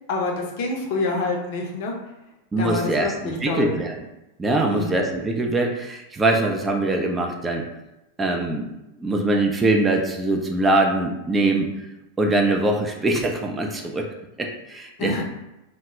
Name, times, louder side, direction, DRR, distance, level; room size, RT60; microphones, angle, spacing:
voice 1, 0.1-1.9 2.6-3.7 4.7-5.0 15.0-15.2, left 3 dB, 50° left, 0 dB, 0.5 m, -27 dB
voice 2, 2.5-4.0 4.4-7.6 8.2-8.7 9.0-11.9 12.2-14.1 14.4-15.2, right 2 dB, 15° right, 1 dB, 0.3 m, -22 dB
2.1 x 2.0 x 3.5 m, 0.93 s
figure-of-eight pair, 90°, 0 cm